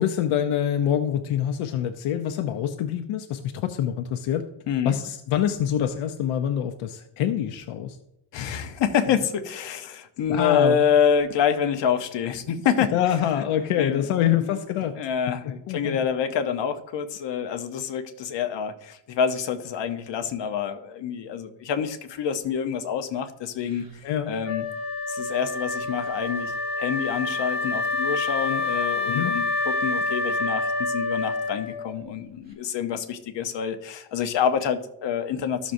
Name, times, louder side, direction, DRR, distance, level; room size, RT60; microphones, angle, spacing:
voice 1, 0.0-4.5 4.8-8.0 10.3-10.8 12.9-14.9 15.7-16.0 24.0-24.3 29.1-29.3, left 10 dB, 90° left, 6 dB, 0.7 m, -25 dB
voice 2, 4.7-5.0 8.3-13.0 13.4-13.5 13.8-14.1 14.3-14.5 15.0-24.6 25.1-35.7, left 7 dB, 60° left, 7 dB, 0.9 m, -27 dB
Wind instrument woodwind instrument, 24.4-32.0, left 3 dB, 20° right, 1.6 m, -27 dB
13.5 x 6.2 x 2.6 m, 0.79 s
cardioid pair, 150°, 49 cm